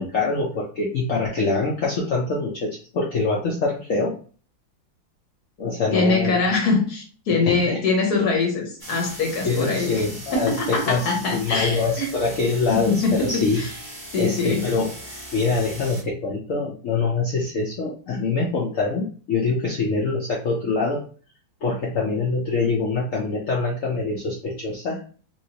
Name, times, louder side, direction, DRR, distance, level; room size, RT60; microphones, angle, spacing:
voice 1, 0.0-4.1 5.6-6.4 7.4-7.8 9.4-13.6 14.2-21.0 21.6-25.0, left 3 dB, 80° left, 0.7 m, -24 dB
voice 2, 5.9-10.0 10.3-12.1 12.7-13.7 14.1-14.7, left 3 dB, 60° left, 1.2 m, -23 dB
sound 1, 8.8-16.0, right 1 dB, 20° left, 1.3 m, -39 dB
2.9 x 2.9 x 2.8 m
omnidirectional pair, 2.2 m